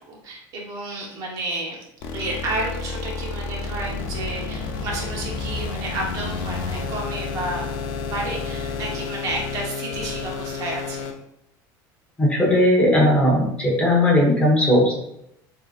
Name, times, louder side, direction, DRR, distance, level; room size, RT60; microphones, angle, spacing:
voice 1, 0.1-1.8 2.1-7.7 8.0-11.1, right 2 dB, 40° right, -1 dB, 0.9 m, -31 dB
sound 1, 2.0-11.1, left 4 dB, 55° left, 0.6 m, -30 dB
voice 2, 12.2-14.9, left 1 dB, 15° left, -2 dB, 1.0 m, -17 dB
6.9 x 2.8 x 2.5 m, 0.78 s
cardioid pair, 175°, 9 cm